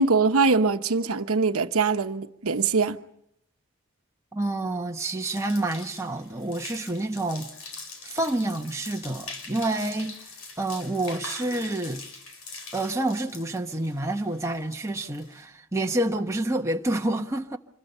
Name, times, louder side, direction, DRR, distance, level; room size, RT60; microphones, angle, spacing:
voice 1, 0.0-3.0, right 4 dB, 85° right, 1.0 m, -22 dB
voice 2, 4.3-7.5 8.0-10.2 10.6-12.0 12.7-17.6, right 2 dB, 15° right, 1.2 m, -28 dB
sound 1, 5.1-15.4, left 3 dB, 80° left, 4.8 m, -43 dB
26.0 x 21.5 x 5.6 m
head